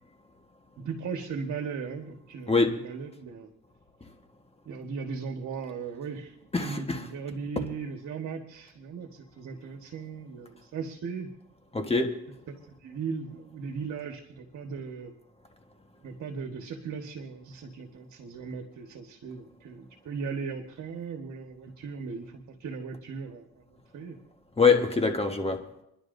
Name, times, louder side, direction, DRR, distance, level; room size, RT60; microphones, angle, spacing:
voice 1, 0.8-3.5 4.6-11.3 12.8-15.1 16.0-24.2, right 5 dB, 65° right, 1.6 m, -38 dB
voice 2, 6.5-7.0 11.7-12.2 24.6-25.6, left 4 dB, 20° left, 1.4 m, -24 dB
28.0 x 11.0 x 2.7 m
cardioid pair, 90°, 30 cm